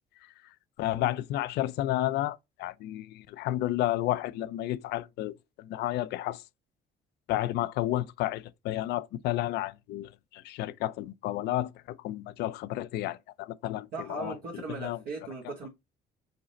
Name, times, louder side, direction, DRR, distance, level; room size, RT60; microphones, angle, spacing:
voice 1, 0.8-6.4 7.3-15.0, left 14 dB, 75° left, 0.4 m, -32 dB
voice 2, 13.9-15.7, right 4 dB, 65° right, 1.1 m, -38 dB
5.1 x 2.1 x 3.8 m
cardioid pair, 110°, 17 cm